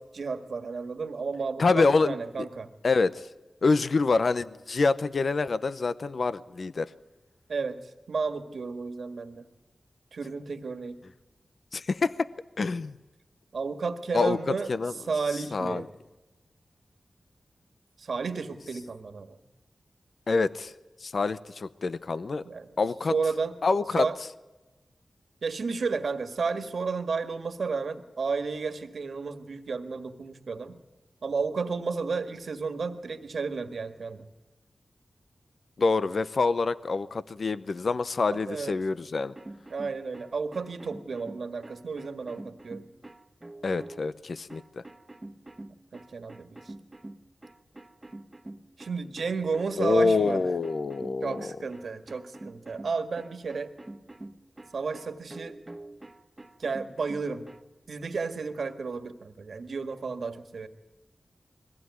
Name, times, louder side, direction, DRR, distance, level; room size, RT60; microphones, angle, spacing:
voice 1, 0.0-2.7 7.5-9.5 10.1-11.0 13.5-15.9 18.0-19.4 22.5-22.8 23.1-23.6 23.9-24.2 25.4-30.8 31.2-34.2 38.3-38.7 39.7-42.9 45.9-46.7 48.8-50.5 51.2-53.7 54.7-55.6 56.6-57.5 57.9-60.7, right 4 dB, 80° right, 8 dB, 1.8 m, -32 dB
voice 2, 1.6-2.1 2.8-3.3 3.6-6.9 11.7-12.1 12.6-12.9 14.1-14.9 15.5-15.8 20.3-20.7 21.0-22.4 22.8-23.1 23.6-24.1 35.8-39.3 43.6-44.8 49.8-51.5, left 4 dB, 65° left, 15 dB, 0.7 m, -26 dB
sound 1, 39.2-44.1 44.5-57.6, right 2 dB, 25° right, 1.4 m, -46 dB
21.5 x 16.0 x 9.6 m, 1.1 s
cardioid pair, 50°, 0 cm